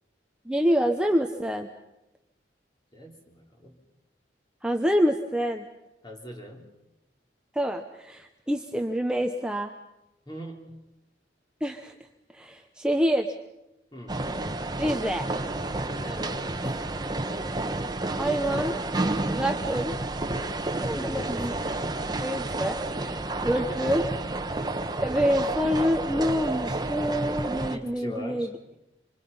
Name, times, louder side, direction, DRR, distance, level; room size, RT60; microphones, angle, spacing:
voice 1, 0.5-1.7 4.6-5.7 7.5-9.7 11.6-11.9 12.3-13.3 14.8-15.3 17.4-17.6 18.2-18.8 19.3-19.9 20.4-20.5 20.8-21.5 22.2-24.0 25.0-28.5, equal, 5° right, 3 dB, 1.0 m, -27 dB
voice 2, 2.9-3.8 6.0-6.7 10.3-10.8 13.9-14.3 16.0-16.5 21.0-21.4 23.5-24.2 27.7-28.5, equal, 25° left, 1 dB, 3.5 m, -41 dB
sound 1, 14.1-27.8, right 2 dB, 25° right, 1.2 m, -30 dB
26.0 x 25.0 x 5.6 m, 0.91 s
head